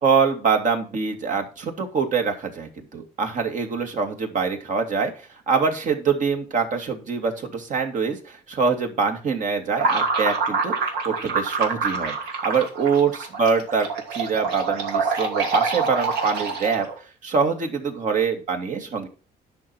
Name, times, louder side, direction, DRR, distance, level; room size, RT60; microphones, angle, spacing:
voice 1, 0.0-5.1 5.5-12.1 12.4-16.9 17.2-19.1, right 5 dB, 50° right, 5 dB, 2.5 m, -24 dB
sound 1, 9.8-17.0, right 4 dB, 80° right, 2.7 m, -26 dB
10.5 x 6.0 x 6.1 m, 0.36 s
cardioid pair, 110°, 17 cm